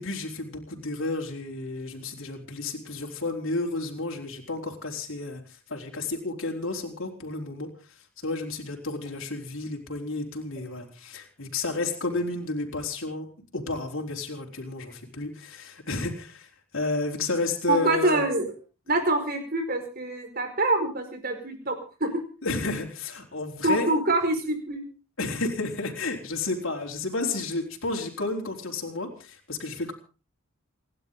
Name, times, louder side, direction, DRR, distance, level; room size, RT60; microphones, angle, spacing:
voice 1, 0.0-5.4 5.7-7.7 8.2-13.3 13.5-16.5 16.7-18.2 22.4-23.9 25.2-29.9, left 3 dB, 65° left, 0 dB, 4.3 m, -31 dB
voice 2, 17.7-18.5 18.9-22.2 23.6-24.8, right 2 dB, 45° right, 6 dB, 4.9 m, -25 dB
29.0 x 11.5 x 3.8 m, 0.36 s
head